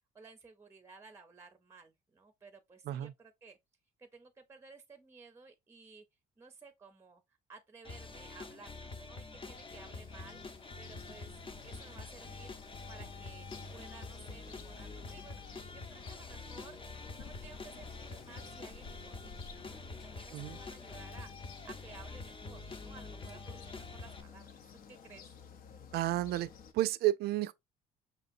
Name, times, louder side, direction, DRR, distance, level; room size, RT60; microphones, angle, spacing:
voice 1, 0.1-3.6 4.0-6.0 6.4-10.4 10.8-12.6 12.9-16.8 17.1-21.3 21.6-24.5 24.9-25.4, right 4 dB, 15° right, 0.6 m, -56 dB
sound 1, 7.8-24.2, left 3 dB, 30° left, 0.8 m, -46 dB
sound 2, 9.6-26.7, left 6 dB, 60° left, 0.7 m, -54 dB
voice 2, 25.9-27.5, right 14 dB, 70° right, 0.4 m, -32 dB
5.7 x 2.8 x 2.5 m
cardioid pair, 110°, 17 cm